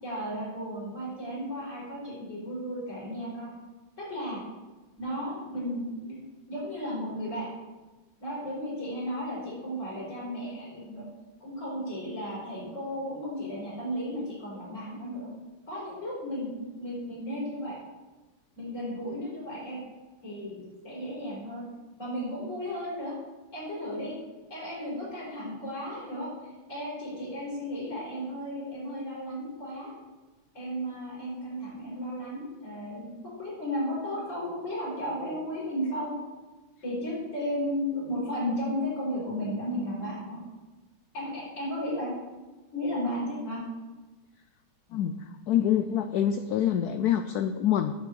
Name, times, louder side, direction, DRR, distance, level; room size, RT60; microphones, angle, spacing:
voice 1, 0.0-3.5 4.0-4.4 5.0-6.2 6.5-7.5 8.2-11.1 11.4-15.3 15.7-17.8 18.6-19.8 20.2-21.6 22.0-23.1 23.5-24.1 24.5-29.9 30.5-36.2 36.8-40.4 41.1-42.1 42.7-43.6, equal, 35° left, -6 dB, 5.2 m, -34 dB
voice 2, 44.9-47.9, left 10 dB, 75° left, 9 dB, 0.9 m, -26 dB
8.8 x 7.3 x 8.2 m, 1.2 s
omnidirectional pair, 2.2 m